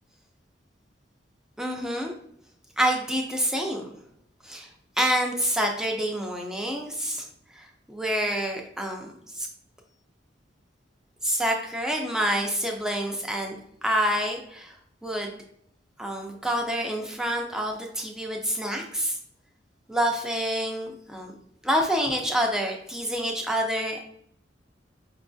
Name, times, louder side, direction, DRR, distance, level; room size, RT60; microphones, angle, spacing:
voice 1, 1.6-2.1 2.8-3.9 4.4-4.7 5.0-7.3 7.5-9.5 11.2-14.7 15.0-15.4 16.0-19.2 19.9-21.3 21.6-24.0, equal, 5° right, 1 dB, 0.5 m, -27 dB
5.1 x 2.6 x 2.3 m, 0.69 s
head